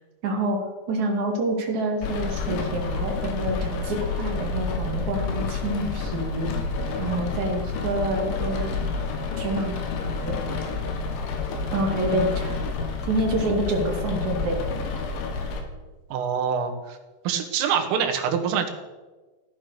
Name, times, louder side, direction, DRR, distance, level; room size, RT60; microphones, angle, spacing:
voice 1, 0.2-0.6 0.9-6.5 7.0-8.9 9.4-9.7 10.0-10.3 11.7-12.5 13.1-14.6, right 1 dB, 45° right, 1 dB, 3.3 m, -27 dB
Rain, 2.0-15.6, left 4 dB, 70° left, 4.3 m, -29 dB
voice 2, 16.1-17.0 17.3-18.7, right 7 dB, 90° right, 5 dB, 4.3 m, -25 dB
16.5 x 11.5 x 6.7 m, 1.2 s
omnidirectional pair, 5.7 m